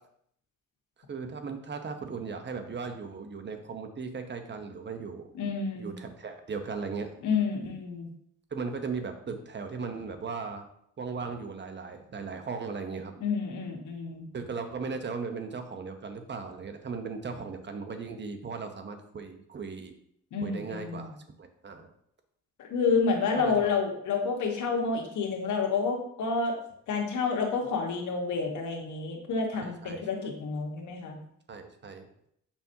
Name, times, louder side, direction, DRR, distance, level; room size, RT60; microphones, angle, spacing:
voice 1, 1.1-5.3 5.8-7.1 8.5-10.7 11.0-13.1 14.3-19.9 20.4-21.1 21.4-21.9 23.4-23.7 29.5-30.1 31.5-32.1, right 5 dB, 35° right, 6 dB, 1.0 m, -37 dB
voice 2, 5.3-6.0 7.2-8.1 13.2-14.3 20.3-21.1 22.6-26.5 26.9-31.2, left 4 dB, 75° left, 1 dB, 1.5 m, -29 dB
7.1 x 5.4 x 2.8 m, 0.70 s
cardioid pair, 90°, 30 cm